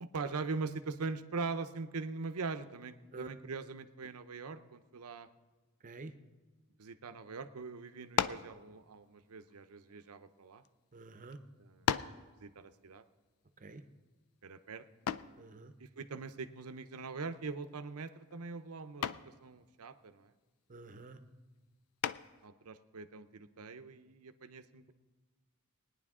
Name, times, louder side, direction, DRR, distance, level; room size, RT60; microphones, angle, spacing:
voice 1, 0.0-5.3 6.8-10.6 11.6-11.9 12.4-13.0 14.4-14.8 15.8-20.3 22.4-24.9, right 4 dB, 85° right, 11 dB, 0.7 m, -42 dB
sound 1, 8.1-8.5 9.5-10.7 11.3-11.4 11.9-12.3 15.1-15.4 17.3-17.7 18.0-18.4 19.0-19.3 22.0-22.5, left 9 dB, 75° left, 0.4 m, -35 dB
voice 2, 10.9-11.4 13.6-13.8 15.4-15.7 20.7-21.2, right 3 dB, 35° right, 9 dB, 0.7 m, -48 dB
20.0 x 9.8 x 3.7 m, 1.2 s
head